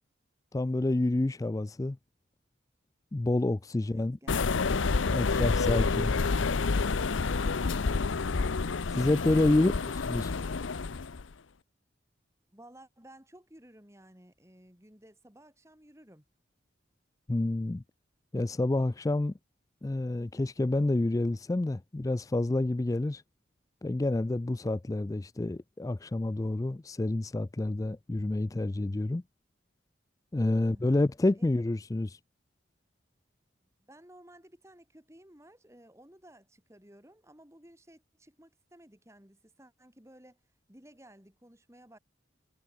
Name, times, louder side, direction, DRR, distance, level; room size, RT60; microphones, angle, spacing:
voice 1, 0.5-2.0 3.1-4.2 5.1-6.1 8.9-9.7 10.0-10.3 17.3-17.8 18.3-19.3 19.8-23.2 23.8-29.2 30.3-32.2, left 2 dB, 15° left, 0.3 m, -28 dB
voice 2, 3.8-4.4 9.2-9.8 12.5-16.3 30.6-31.0 31.4-31.5 33.6-40.4 40.7-42.0, right 1 dB, 15° right, 3.8 m, -56 dB
sound 1, 4.3-11.2, left 4 dB, 80° left, 0.7 m, -28 dB
head